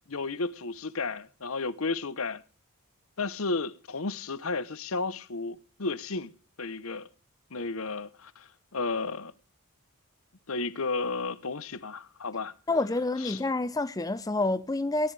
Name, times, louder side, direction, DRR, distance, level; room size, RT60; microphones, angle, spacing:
voice 1, 0.1-2.4 3.2-6.3 6.6-7.1 7.5-9.3 10.5-12.5 13.2-13.4, left 3 dB, 65° left, 1.0 m, -33 dB
voice 2, 12.7-15.1, left 2 dB, 15° left, 0.5 m, -28 dB
18.0 x 12.5 x 3.4 m
head